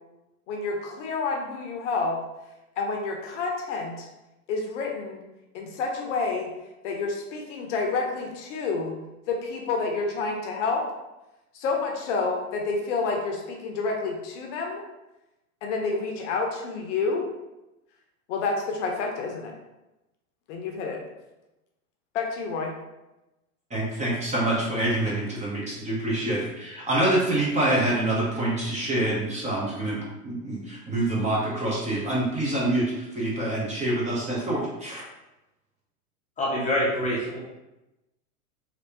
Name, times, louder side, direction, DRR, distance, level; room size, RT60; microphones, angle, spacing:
voice 1, 0.5-2.2 2.8-4.1 4.5-5.2 5.5-6.5 6.8-9.0 9.3-10.8 11.5-14.8 15.6-17.3 18.3-19.5 20.5-21.0 22.1-22.7, left 4 dB, 50° left, 1 dB, 0.7 m, -29 dB
voice 2, 23.7-35.0, right 1 dB, 15° right, -5 dB, 0.9 m, -26 dB
voice 3, 36.4-37.4, left 1 dB, 15° left, -6 dB, 0.7 m, -25 dB
3.1 x 2.8 x 2.9 m, 0.98 s
hypercardioid pair, 105°, 46 cm